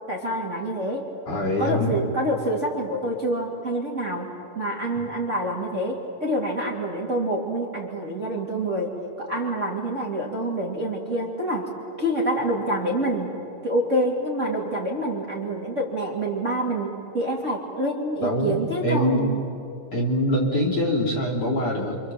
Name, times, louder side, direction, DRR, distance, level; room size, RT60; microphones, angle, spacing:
voice 1, 0.1-1.1 1.6-11.7 12.0-13.4 13.6-19.4, right 1 dB, 25° right, -2 dB, 2.5 m, -27 dB
voice 2, 1.3-2.0 18.2-18.6 18.8-19.4 19.9-22.0, equal, 45° left, -5 dB, 4.0 m, -24 dB
28.5 x 26.0 x 7.6 m, 2.7 s
omnidirectional pair, 4.0 m